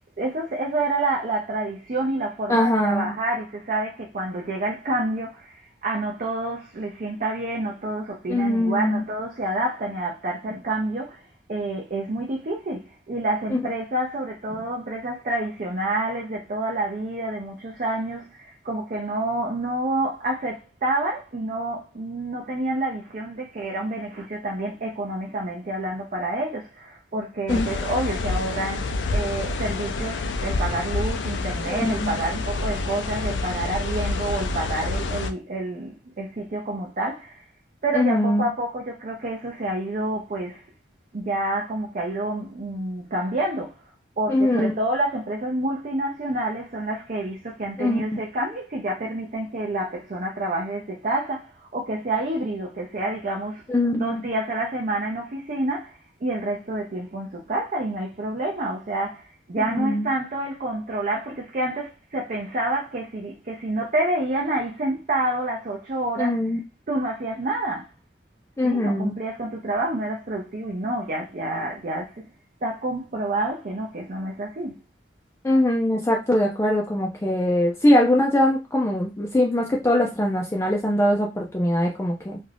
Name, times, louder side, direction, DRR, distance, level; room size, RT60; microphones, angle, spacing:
voice 1, 0.2-11.2 11.5-37.4 37.8-40.6 41.1-43.8 44.2-66.4 66.9-67.9 68.6-72.3 72.6-74.8, right 2 dB, 45° right, 0.5 m, -28 dB
voice 2, 2.5-3.1 8.3-9.0 13.5-13.6 27.5-27.7 31.7-32.2 37.9-38.5 44.3-44.7 47.8-48.0 53.7-54.2 59.7-60.1 66.2-66.6 68.6-69.2 75.4-82.4, left 1 dB, 15° left, 0.4 m, -22 dB
sound 1, 27.5-35.3, left 3 dB, 85° left, 0.4 m, -28 dB
2.5 x 2.3 x 3.3 m
head